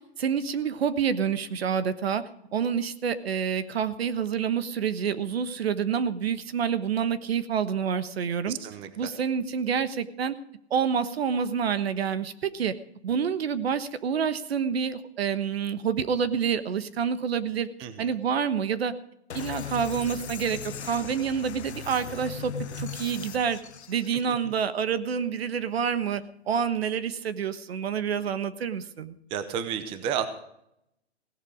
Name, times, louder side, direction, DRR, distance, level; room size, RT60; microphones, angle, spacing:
voice 1, 0.2-2.2 2.5-8.6 9.0-10.3 10.7-12.7 13.0-17.7 18.0-18.9 19.3-23.6 23.9-29.1, right 7 dB, 70° right, 12 dB, 1.3 m, -28 dB
voice 2, 8.4-9.1 17.8-18.1 24.3-24.4 29.3-30.3, right 8 dB, 15° right, 11 dB, 0.7 m, -32 dB
sound 1, 19.3-24.1, left 7 dB, 85° left, 1.2 m, -38 dB
17.0 x 11.0 x 5.0 m, 0.77 s
hypercardioid pair, 150°, 33 cm